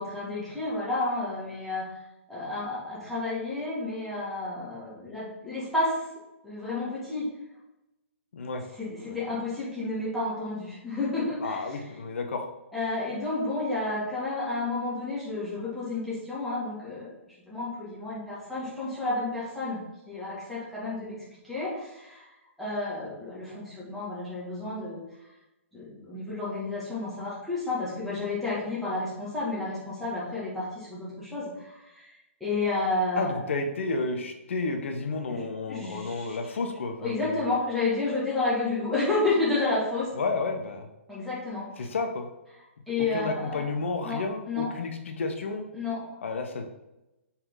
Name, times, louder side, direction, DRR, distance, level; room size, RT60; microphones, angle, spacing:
voice 1, 0.0-1.9 2.3-6.0 6.4-7.3 8.8-11.8 12.7-17.1 17.5-19.8 20.1-21.2 21.4-22.3 22.6-25.0 25.7-32.1 32.4-33.4 35.3-36.4 37.0-40.1 41.1-41.8 42.9-43.7 44.0-44.7 45.7-46.0, left 2 dB, ahead, -11 dB, 2.2 m, -31 dB
voice 2, 8.3-8.6 9.1-9.2 11.4-12.5 33.1-37.5 40.1-40.9 41.8-42.3 43.0-45.7 46.2-46.6, left 3 dB, 60° left, 5 dB, 0.9 m, -31 dB
5.6 x 4.4 x 3.9 m, 0.96 s
figure-of-eight pair, 125°, 7 cm